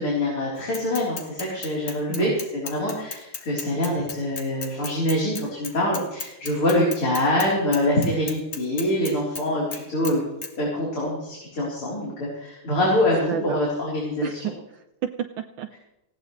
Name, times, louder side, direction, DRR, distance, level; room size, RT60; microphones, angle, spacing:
voice 1, 0.0-10.2 10.6-14.5, left 1 dB, 80° left, -5 dB, 4.8 m, -25 dB
Bicycle / Mechanisms, 0.7-7.5 7.7-9.4 9.7-10.1 10.4-10.5, left 4 dB, 40° left, 1.8 m, -34 dB
voice 2, 13.3-13.6 14.2-15.8, right 9 dB, 70° right, 6 dB, 1.4 m, -31 dB
19.0 x 16.5 x 3.2 m, 0.91 s
omnidirectional pair, 2.4 m